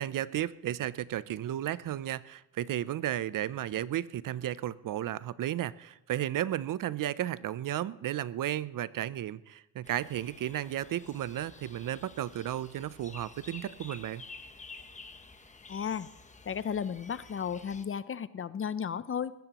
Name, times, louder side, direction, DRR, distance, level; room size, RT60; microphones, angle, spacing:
voice 1, 0.0-14.2, right 12 dB, 60° right, 18 dB, 0.6 m, -34 dB
sound 1, 9.8-17.8, left 3 dB, 20° left, 1.0 m, -51 dB
voice 2, 15.7-16.1 16.4-19.3, left 7 dB, 35° left, 16 dB, 0.5 m, -34 dB
20.0 x 15.5 x 3.0 m, 0.85 s
cardioid pair, 100°, 37 cm